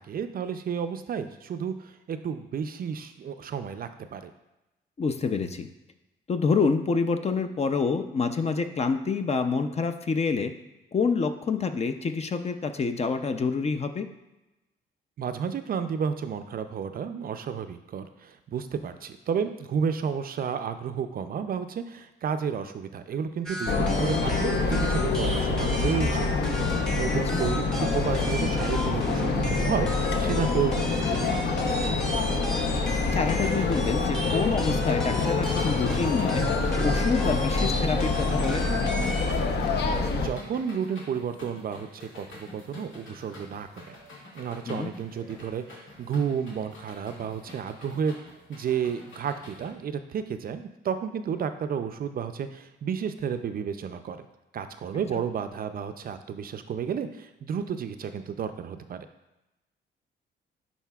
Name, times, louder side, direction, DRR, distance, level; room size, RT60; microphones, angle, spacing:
voice 1, 0.0-4.3 15.2-31.5 40.2-44.0 44.3-48.2 48.5-54.2 54.5-59.1, right 7 dB, 50° right, 9 dB, 0.5 m, -32 dB
voice 2, 5.0-5.7 6.3-10.5 10.9-14.1 27.3-27.4 33.1-36.5 36.8-38.7 44.7-44.9 55.1-55.2, left 4 dB, 35° left, 8 dB, 0.5 m, -27 dB
sound 1, 23.5-39.3, equal, 5° left, 1.0 m, -36 dB
sound 2, 23.7-40.3, left 3 dB, 60° left, 0.8 m, -26 dB
sound 3, 32.8-49.7, left 2 dB, 75° left, 2.2 m, -47 dB
10.0 x 4.2 x 2.3 m, 0.98 s
cardioid pair, 90°, 20 cm